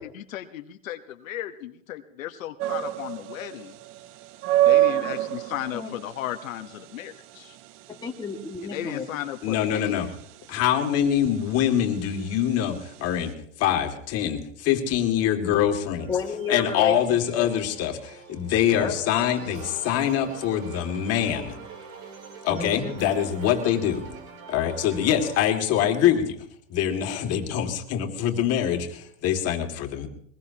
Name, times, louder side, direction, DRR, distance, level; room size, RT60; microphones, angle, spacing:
voice 1, 0.0-3.7 4.7-7.6 8.6-10.1, left 12 dB, 80° left, 6 dB, 1.3 m, -35 dB
sound 1, 2.6-13.3, right 14 dB, 35° right, 0.5 m, -28 dB
voice 2, 7.9-9.1 16.1-17.5 18.7-19.0 22.5-22.9, left 5 dB, 10° left, 0 dB, 2.0 m, -31 dB
voice 3, 9.4-10.1 10.5-16.2 16.5-21.6 22.4-24.1 24.5-26.4 26.7-30.1, left 10 dB, 35° left, 4 dB, 2.5 m, -24 dB
sound 2, 16.0-25.4, right 6 dB, 75° right, 3.7 m, -44 dB
22.0 x 21.0 x 2.9 m, 0.66 s
hypercardioid pair, 125°, 40 cm